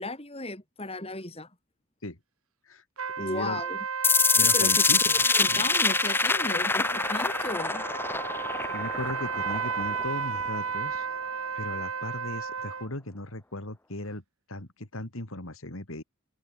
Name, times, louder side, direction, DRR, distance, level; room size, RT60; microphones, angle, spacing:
voice 1, 0.0-1.5 3.2-3.8 4.4-4.8 5.1-7.9, left 2 dB, 25° left, 4.5 m, -35 dB
sound 1, 3.0-12.9, right 5 dB, 75° right, 1.9 m, -34 dB
voice 2, 3.2-3.6 4.3-5.1 5.5-5.7 8.7-11.1 11.5-14.2 14.5-16.0, left 1 dB, 65° left, 2.9 m, -37 dB
sound 2, 4.0-10.0, left 4 dB, 10° left, 0.5 m, -25 dB
head